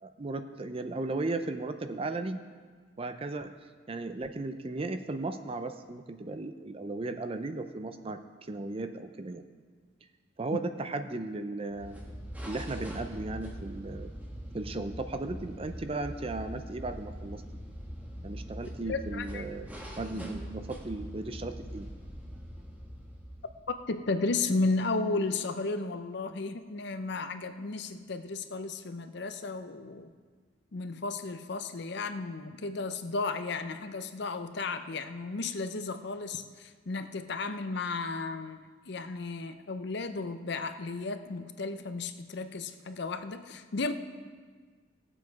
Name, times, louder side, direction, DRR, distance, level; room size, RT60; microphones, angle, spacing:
voice 1, 0.0-2.4 3.0-3.5 3.9-9.4 10.4-12.0 12.5-14.1 14.5-17.4 18.2-19.7 20.0-21.9, right 2 dB, 30° right, 8 dB, 0.5 m, -36 dB
sound 1, 11.7-23.9, equal, 10° right, 1.3 m, -42 dB
voice 2, 18.8-19.4 23.7-30.1 30.7-43.9, left 3 dB, 60° left, 9 dB, 0.6 m, -34 dB
16.5 x 7.7 x 4.7 m, 1.5 s
head